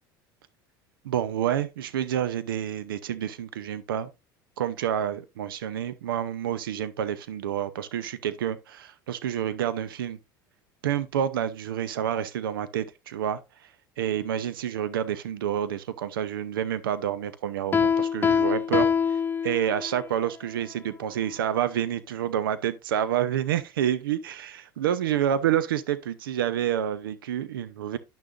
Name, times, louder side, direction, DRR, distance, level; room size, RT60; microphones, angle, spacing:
voice 1, 1.0-4.1 4.6-10.2 10.8-28.0, right 10 dB, 85° right, 0.7 m, -28 dB
Piano, 17.7-20.0, left 6 dB, 20° left, 0.3 m, -24 dB
10.5 x 6.3 x 2.6 m
hypercardioid pair, 80°, 11 cm